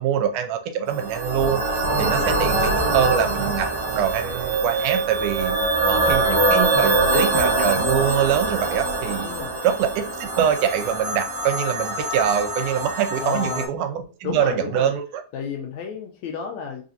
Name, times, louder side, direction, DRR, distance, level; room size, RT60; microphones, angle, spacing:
voice 1, 0.0-1.6 2.0-3.7 3.9-5.6 5.9-9.3 9.6-15.2, right 9 dB, 85° right, 8 dB, 2.0 m, -24 dB
sound 1, 0.9-13.6, right 2 dB, 65° right, 1.1 m, -23 dB
voice 2, 1.8-2.2 2.5-3.2 6.6-7.1 9.2-9.5 13.2-13.7 14.2-14.9 15.3-16.8, left 6 dB, 80° left, 1 dB, 1.7 m, -32 dB
4.9 x 2.6 x 2.6 m, 0.37 s
omnidirectional pair, 3.6 m